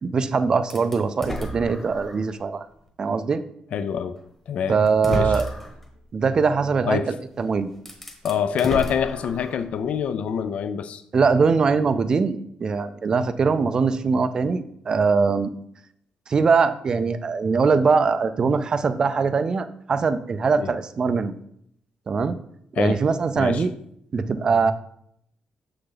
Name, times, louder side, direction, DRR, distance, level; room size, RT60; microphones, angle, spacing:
voice 1, 0.0-2.7 3.0-3.4 4.7-5.5 6.1-7.7 11.1-15.5 16.3-21.3 22.1-22.4 22.7-23.7 24.1-24.7, right 5 dB, 30° right, 0.4 m, -22 dB
sound 1, 0.7-2.3 2.9-3.0 4.2-4.3 4.9-5.8 7.3-7.4 7.8-9.7, equal, 10° left, 1.1 m, -32 dB
voice 2, 3.7-4.2 4.5-4.8 5.1-5.4 6.9-7.1 8.2-11.0 20.6-20.7 22.8-23.0 23.4-23.6, left 8 dB, 50° left, 0.4 m, -25 dB
7.0 x 6.4 x 3.9 m
cardioid pair, 180°, 3 cm